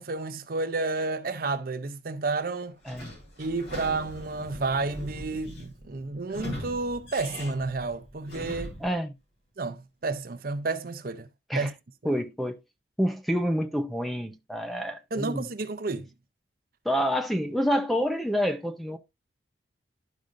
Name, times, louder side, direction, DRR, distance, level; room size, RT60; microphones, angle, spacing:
voice 1, 0.0-2.7 3.4-8.7 9.6-11.3 11.6-11.7 12.0-12.1 15.1-16.1, right 3 dB, 50° right, 0.6 m, -31 dB
Sliding door / Squeak, 2.8-8.9, left 1 dB, 65° left, 3.7 m, -40 dB
voice 2, 8.8-9.1 11.5-11.7 12.0-12.6 13.0-15.5 16.8-19.0, equal, ahead, 0.6 m, -28 dB
12.0 x 5.0 x 2.6 m
head